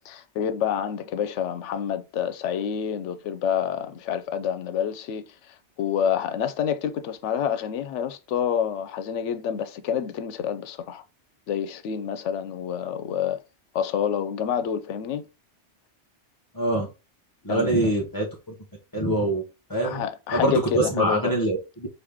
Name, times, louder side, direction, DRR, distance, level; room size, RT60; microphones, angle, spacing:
voice 1, 0.1-11.0 11.5-13.4 13.7-15.2 17.5-17.9 19.8-21.4, left 8 dB, 85° left, 0.9 m, -28 dB
voice 2, 16.5-16.9 17.4-18.3 18.9-19.4 19.7-20.0 20.3-21.9, right 1 dB, 20° left, 0.7 m, -24 dB
4.9 x 2.8 x 3.5 m
omnidirectional pair, 1.2 m